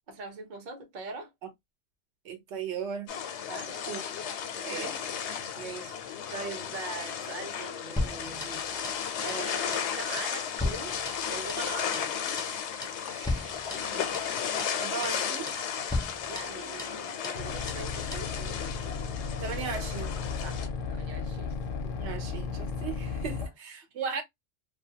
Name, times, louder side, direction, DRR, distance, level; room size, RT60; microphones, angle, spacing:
voice 1, 0.1-1.3 3.5-3.8 4.5-4.9 5.5-12.2 16.3-18.7 20.4-21.6 23.4-23.5, right 3 dB, 50° right, 0.8 m, -42 dB
voice 2, 2.2-3.1 3.9-4.0 4.6-5.1 13.1-14.1 14.8-15.5 19.4-20.1 21.8-24.2, right 6 dB, 80° right, 1.0 m, -37 dB
sound 1, 3.1-20.7, left 8 dB, 85° left, 0.9 m, -34 dB
sound 2, 8.0-9.0 9.3-9.5 9.7-9.9 10.2-11.7 11.9-12.1 12.4-12.6 12.8-13.0 13.3-14.3 14.6-14.8 15.0-15.2 15.5-15.7 15.9-17.0 17.2-17.4 17.7-17.9 18.1-18.3, left 2 dB, 5° left, 0.5 m, -35 dB
sound 3, 17.3-23.5, left 5 dB, 60° left, 0.6 m, -35 dB
2.4 x 2.2 x 2.7 m
omnidirectional pair, 1.1 m